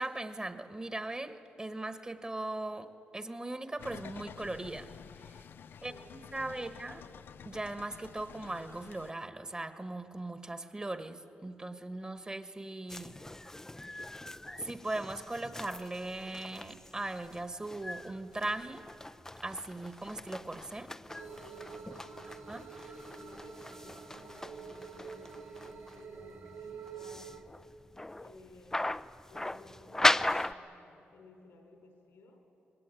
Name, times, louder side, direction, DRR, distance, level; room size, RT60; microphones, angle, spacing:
voice 1, 0.0-2.9 3.1-4.9 5.3-5.4 5.8-5.9 6.3-7.0 7.4-13.1 14.6-18.8 19.4-20.9 22.5-22.9, right 2 dB, 20° right, 9 dB, 1.4 m, -39 dB
sound 1, 3.8-9.1, left 7 dB, 65° left, 0.5 m, -50 dB
voice 2, 5.7-7.2 21.2-22.6 22.9-27.4 28.2-29.0 29.3-32.4, left 2 dB, 85° left, 3 dB, 4.9 m, -57 dB
sound 2, 12.9-30.5, left 1 dB, 10° left, 0.5 m, -38 dB
sound 3, 21.1-27.4, right 6 dB, 90° right, 3.0 m, -47 dB
26.0 x 21.0 x 9.1 m, 2.9 s
cardioid pair, 80°, 4 cm